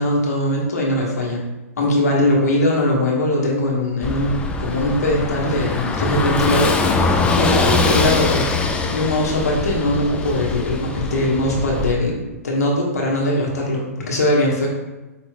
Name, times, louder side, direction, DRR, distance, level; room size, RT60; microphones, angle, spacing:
voice 1, 0.0-1.4 1.8-8.4 8.9-12.1 12.4-14.7, left 1 dB, 85° left, -2 dB, 1.4 m, -20 dB
Car passing by / Engine, 4.0-11.9, left 3 dB, 10° left, 0.4 m, -22 dB
5.1 x 4.4 x 2.3 m, 1.1 s
hypercardioid pair, 130°, 8 cm